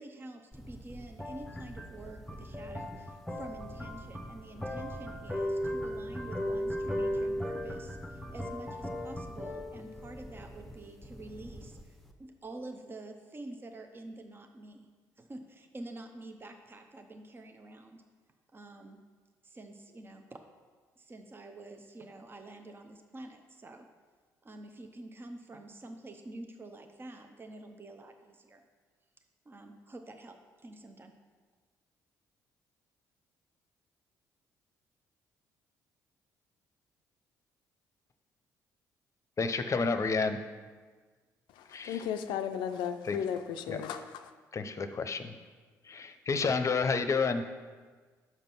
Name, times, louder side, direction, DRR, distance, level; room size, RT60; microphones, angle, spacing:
voice 1, 0.0-14.9 15.2-18.0 18.5-19.0 19.4-20.4 21.0-23.9 24.4-28.6 29.4-31.1, right 2 dB, 30° right, 0.8 m, -47 dB
sound 1, 0.5-12.1, equal, 5° left, 0.9 m, -38 dB
voice 2, 39.4-40.4 41.7-42.0 43.0-43.2 43.7-43.8 44.5-45.3 45.8-47.4, left 4 dB, 40° left, 0.7 m, -30 dB
voice 3, 41.5-44.3, left 8 dB, 75° left, 0.4 m, -35 dB
6.1 x 5.2 x 5.9 m
hypercardioid pair, 55°, 8 cm